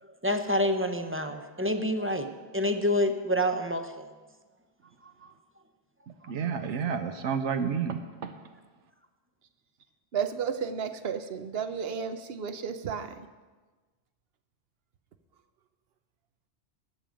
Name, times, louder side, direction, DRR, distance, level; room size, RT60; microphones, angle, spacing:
voice 1, 0.2-4.1 5.0-5.1 6.2-6.3, equal, 15° right, 7 dB, 0.5 m, -28 dB
voice 2, 6.3-8.3, right 6 dB, 80° right, 8 dB, 1.1 m, -30 dB
voice 3, 10.1-13.3, right 7 dB, 60° right, 10 dB, 1.0 m, -33 dB
14.5 x 9.2 x 5.1 m, 1.3 s
omnidirectional pair, 1.2 m